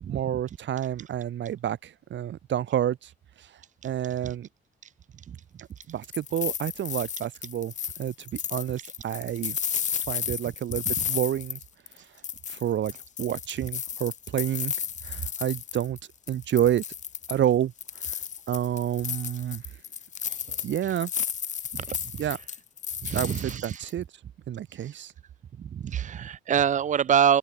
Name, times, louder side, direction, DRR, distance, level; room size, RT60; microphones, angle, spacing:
voice 1, 0.1-3.1 3.4-3.5 3.8-4.5 5.9-9.6 10.1-11.6 12.5-12.9 13.2-14.7 15.0-16.0 16.3-16.8 17.3-17.7 18.5-19.6 20.6-21.1 22.2-22.4 23.1-24.0 24.5-25.1, right 11 dB, 65° right, 2.7 m, -29 dB
sound 1, 5.8-12.0 12.2-16.0 16.3-17.4 17.8-23.9, left 8 dB, 40° left, 0.5 m, -33 dB
voice 2, 23.0-23.6 25.6-27.4, right 8 dB, 40° right, 0.4 m, -25 dB
cardioid pair, 90°, 20 cm